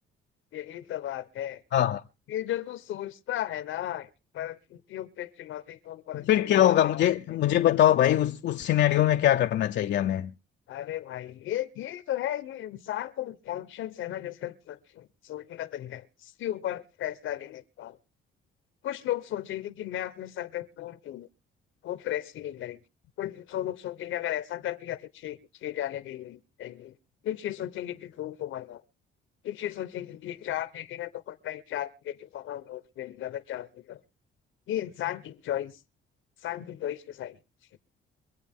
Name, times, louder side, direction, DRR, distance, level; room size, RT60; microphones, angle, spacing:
voice 1, 0.5-1.6 2.3-4.1 4.3-6.3 6.5-7.0 10.7-18.0 18.8-21.3 21.8-22.8 23.2-26.9 27.2-28.8 29.4-34.0 34.7-35.8 36.4-37.4, left 12 dB, 80° left, 1.0 m, -35 dB
voice 2, 6.1-10.3, left 12 dB, 65° left, 0.6 m, -22 dB
24.5 x 8.3 x 3.7 m
cardioid pair, 90°, 20 cm